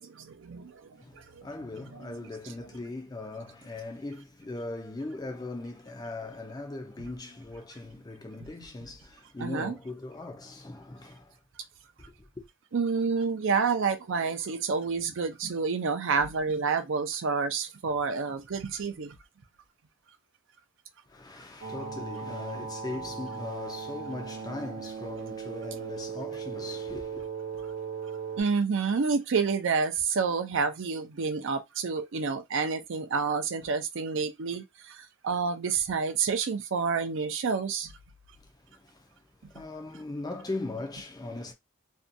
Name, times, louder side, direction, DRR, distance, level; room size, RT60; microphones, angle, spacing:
voice 1, 0.0-0.8 9.4-9.7 12.7-19.1 28.4-37.9, right 5 dB, 60° right, 0.4 m, -29 dB
voice 2, 1.0-11.4 12.1-12.4 21.1-27.3 38.4-41.5, left 2 dB, 20° left, 0.4 m, -39 dB
sound 1, 21.6-28.4, right 6 dB, 85° right, 0.9 m, -38 dB
2.6 x 2.2 x 2.5 m
head